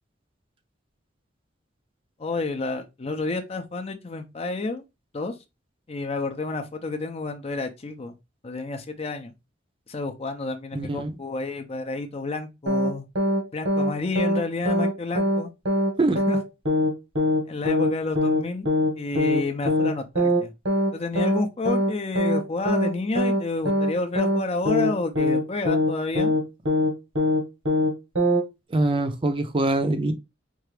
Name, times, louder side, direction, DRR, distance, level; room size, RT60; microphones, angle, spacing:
voice 1, 2.2-4.8 5.1-5.3 5.9-8.2 8.4-9.3 9.9-13.1 13.5-15.5 16.3-16.4 17.5-18.7 19.0-20.5 20.9-26.3, left 3 dB, 35° left, 0.5 m, -30 dB
voice 2, 10.7-11.1 16.0-16.2 28.7-30.1, right 2 dB, 30° right, 0.5 m, -23 dB
sound 1, 12.7-12.9 13.2-13.4 13.7-13.9 14.2-14.4 14.7-14.9 15.2-15.4 15.7-15.9 16.2-16.4 16.7-16.9 17.2-17.4 17.7-17.9 18.2-18.4 18.7-18.9 19.2-19.4 19.7-19.9 20.2-20.4 20.7-20.9 21.2-21.4 21.7-21.9 22.2-22.4 22.7-22.9 23.2-23.4 23.7-23.9 24.2-24.4 24.7-24.9 25.2-25.4 25.7-25.9 26.2-26.4 26.7-26.9 27.2-27.4 27.7-27.9 28.2-28.4, left 1 dB, 85° right, 1.2 m, -22 dB
4.5 x 2.4 x 3.2 m
head